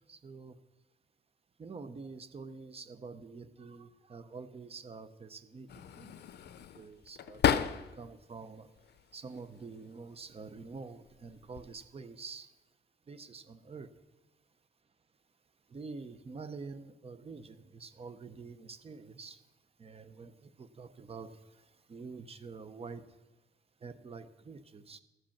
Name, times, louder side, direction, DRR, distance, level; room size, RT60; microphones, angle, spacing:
voice 1, 0.1-0.5 1.6-5.7 6.0-6.2 6.8-7.7 8.0-8.7 9.1-12.5 13.1-13.9 15.7-19.4 19.8-20.3 20.6-21.3 21.9-23.0 23.8-25.0, right 4 dB, 35° right, 12 dB, 0.6 m, -46 dB
sound 1, 5.7-8.2 8.6-9.5 10.4-10.7 11.1-11.8, left 9 dB, 75° left, 0.5 m, -34 dB
13.5 x 5.2 x 7.1 m, 1.1 s
wide cardioid pair, 115°, 17 cm